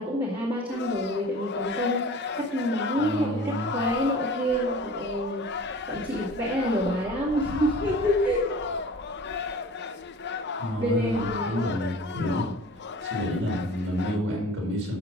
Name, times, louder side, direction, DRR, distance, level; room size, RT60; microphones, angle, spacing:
voice 1, 0.0-5.5 5.9-8.5 10.8-11.6, equal, 25° right, -4 dB, 2.3 m, -27 dB
sound 1, 0.7-14.2, left 6 dB, 50° left, 0.7 m, -34 dB
voice 2, 3.0-3.7 10.6-12.5 13.0-15.0, equal, 60° right, -2 dB, 5.2 m, -29 dB
12.0 x 6.9 x 6.5 m, 0.80 s
head